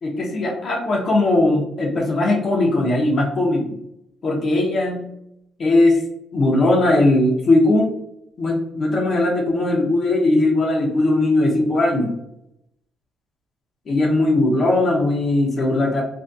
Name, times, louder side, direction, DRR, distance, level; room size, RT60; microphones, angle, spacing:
voice 1, 0.0-3.6 4.2-5.0 5.6-6.0 6.3-7.9 8.4-12.1 13.9-16.0, left 2 dB, 50° left, -1 dB, 0.7 m, -19 dB
2.8 x 2.6 x 2.4 m, 0.80 s
cardioid pair, 90°, 0 cm